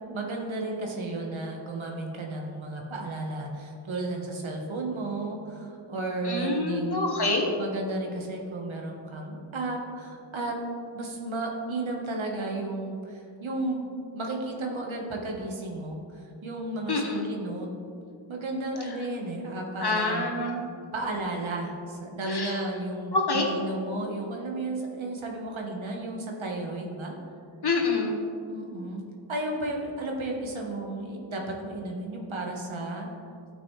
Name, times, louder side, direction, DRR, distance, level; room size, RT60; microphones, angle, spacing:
voice 1, 0.1-7.1 7.6-10.6 10.9-13.9 14.1-17.7 18.3-20.3 20.9-27.1 28.5-29.0 29.3-33.1, right 2 dB, 85° right, 0 dB, 1.4 m, -33 dB
voice 2, 6.2-7.5 16.9-17.2 19.8-20.7 22.3-22.6 23.1-23.5 27.6-28.1, left 3 dB, 55° left, 0 dB, 1.5 m, -26 dB
13.0 x 6.0 x 3.2 m, 2.4 s
wide cardioid pair, 65°, 46 cm